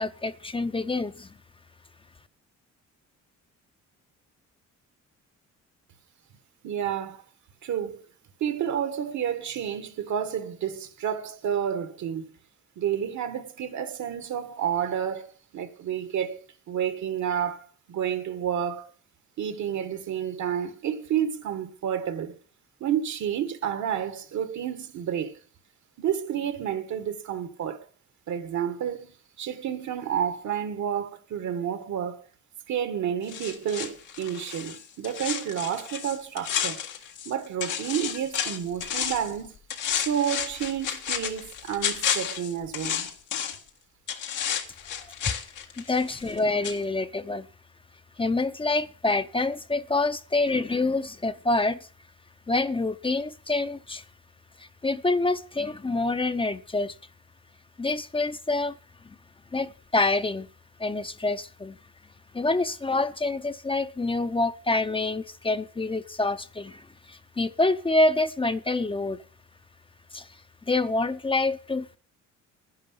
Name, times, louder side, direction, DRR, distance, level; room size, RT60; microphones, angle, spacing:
voice 1, 0.0-1.3 45.8-47.5 48.2-51.8 52.5-54.0 54.6-56.9 57.8-58.7 59.5-60.5 60.8-61.8 62.3-69.2 70.1-70.3 70.7-72.0, left 2 dB, 15° left, 0.6 m, -26 dB
voice 2, 6.6-7.2 7.6-8.0 8.4-12.3 12.8-18.9 19.4-22.4 22.8-25.4 26.0-27.8 28.3-32.2 32.7-36.8 37.3-39.5 39.9-43.1, right 9 dB, 70° right, 1.7 m, -30 dB
sound 1, 33.3-37.3 37.6-39.3 39.7-43.7 44.1-46.4 46.6-46.8, left 8 dB, 90° left, 1.7 m, -31 dB
11.0 x 10.5 x 5.7 m
cardioid pair, 90°, 30 cm